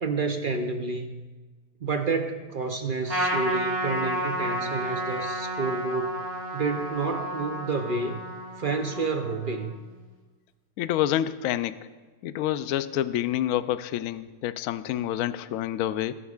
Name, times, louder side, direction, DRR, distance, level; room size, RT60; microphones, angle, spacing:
voice 1, 0.0-1.2 1.8-6.2 6.5-8.2 8.6-9.8, right 4 dB, 55° right, 6 dB, 0.5 m, -29 dB
Trumpet, 3.1-9.8, equal, 20° right, 3.0 m, -31 dB
voice 2, 10.8-11.8 12.2-16.1, left 12 dB, 70° left, 13 dB, 0.9 m, -28 dB
22.5 x 11.0 x 2.4 m, 1.3 s
omnidirectional pair, 1.7 m